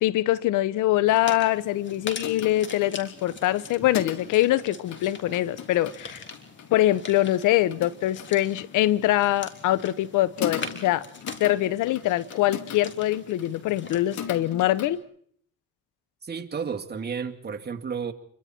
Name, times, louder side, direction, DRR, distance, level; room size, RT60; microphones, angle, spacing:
voice 1, 0.0-6.2 6.7-11.0 11.4-15.0, left 15 dB, 90° left, 0.9 m, -23 dB
sound 1, 0.9-15.0, left 8 dB, 65° left, 2.7 m, -40 dB
sound 2, 1.1-14.3, left 4 dB, 40° left, 3.8 m, -43 dB
voice 2, 16.2-18.1, right 6 dB, 35° right, 2.2 m, -32 dB
29.0 x 23.5 x 4.4 m
cardioid pair, 90°, 30 cm